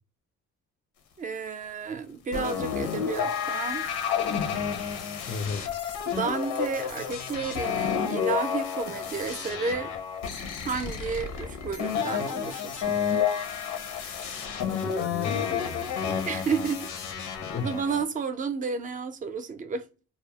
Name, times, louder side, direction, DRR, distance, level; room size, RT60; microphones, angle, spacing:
voice 1, 1.2-3.9 6.1-9.9 10.6-12.9 16.3-16.9 17.6-19.9, right 5 dB, 25° right, 0.4 m, -31 dB
sound 1, 2.3-18.0, left 7 dB, 90° left, 0.6 m, -30 dB
voice 2, 5.3-5.7 14.6-16.3 17.4-17.7, left 5 dB, 35° left, 0.4 m, -35 dB
sound 2, 8.9-9.2 10.9-11.2 12.9-13.2 14.9-15.2, right 6 dB, 90° right, 0.5 m, -45 dB
2.3 x 2.0 x 2.8 m
cardioid pair, 90°, 30 cm